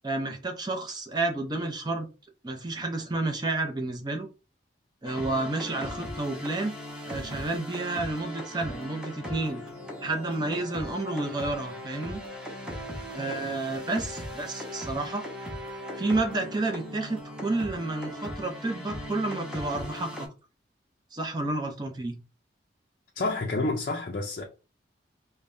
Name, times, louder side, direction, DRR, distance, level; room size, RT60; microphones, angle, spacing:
voice 1, 0.0-2.1 2.4-4.3 5.0-6.8 7.0-9.6 10.0-12.2 13.1-15.2 16.0-20.3 21.1-22.2, right 2 dB, 20° right, 0.5 m, -30 dB
sound 1, 5.0-20.3, equal, 5° right, 0.9 m, -38 dB
voice 2, 23.2-24.4, left 2 dB, 45° left, 0.5 m, -29 dB
5.1 x 2.1 x 2.5 m
head